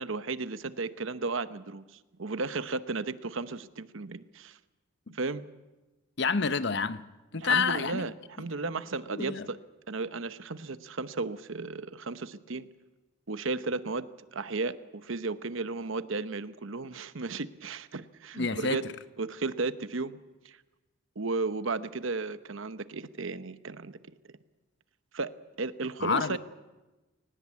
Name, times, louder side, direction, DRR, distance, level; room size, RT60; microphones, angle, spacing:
voice 1, 0.0-1.8 2.2-4.6 5.1-5.5 7.4-9.6 9.9-12.7 13.3-18.8 19.2-20.2 20.4-20.6 21.2-24.0 25.1-25.3 25.6-26.4, right 3 dB, 70° right, 0.9 m, -34 dB
voice 2, 6.2-7.0 7.3-8.0 9.1-9.5 18.3-18.8 26.0-26.4, left 5 dB, 55° left, 0.8 m, -28 dB
23.0 x 19.5 x 8.5 m
head